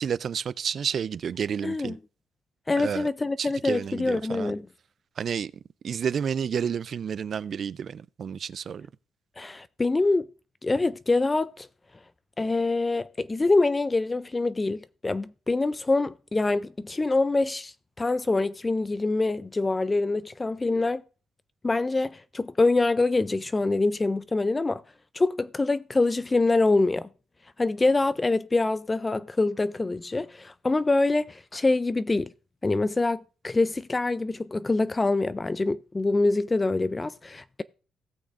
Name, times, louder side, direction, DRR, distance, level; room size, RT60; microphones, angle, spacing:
voice 1, 0.0-2.0 2.8-3.1 3.4-4.5 5.2-5.5 5.8-8.9, right 7 dB, 55° right, 0.3 m, -30 dB
voice 2, 1.6-2.0 2.7-4.7 9.4-10.3 10.6-11.7 12.4-21.0 21.6-24.8 25.1-27.1 27.6-32.3 32.6-37.6, left 3 dB, 20° left, 0.4 m, -25 dB
17.5 x 6.3 x 2.5 m
cardioid pair, 90°, 0 cm